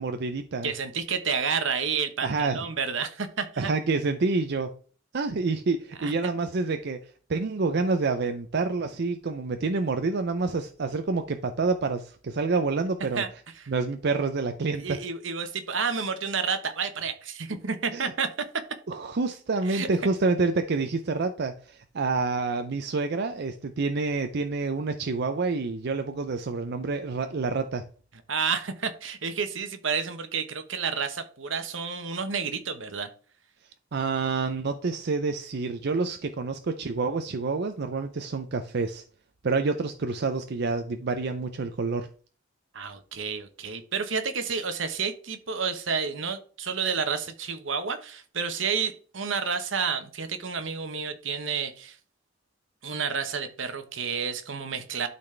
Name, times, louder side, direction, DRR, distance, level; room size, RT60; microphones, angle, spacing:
voice 1, 0.0-0.7 2.2-2.6 3.6-4.7 5.1-7.0 7.3-13.2 13.7-15.0 17.9-18.1 18.9-27.8 33.9-39.0 39.4-42.1, right 3 dB, 60° right, 0.5 m, -28 dB
voice 2, 0.6-3.7 6.0-6.3 13.1-13.3 14.8-18.3 19.7-19.9 28.3-33.1 42.7-52.0 52.8-55.1, right 5 dB, 80° right, 1.0 m, -30 dB
12.0 x 4.1 x 3.3 m
head